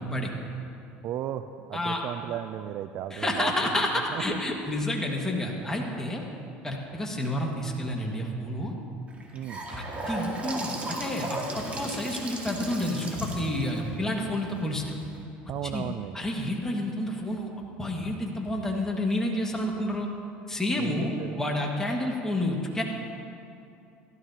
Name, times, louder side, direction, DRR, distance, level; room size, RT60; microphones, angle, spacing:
voice 1, 1.0-4.6 9.3-9.7 15.5-16.2 20.8-21.4, right 11 dB, 55° right, 11 dB, 0.4 m, -35 dB
voice 2, 3.1-6.2 6.6-8.7 9.7-14.9 15.7-15.8 16.1-17.5 17.8-20.1 20.5-22.8, left 1 dB, 10° left, -1 dB, 1.8 m, -29 dB
Gurgling / Sink (filling or washing) / Bathtub (filling or washing), 9.1-15.2, right 1 dB, 25° right, 2.0 m, -36 dB
16.0 x 12.5 x 2.9 m, 2.6 s
supercardioid pair, 95°, 5 cm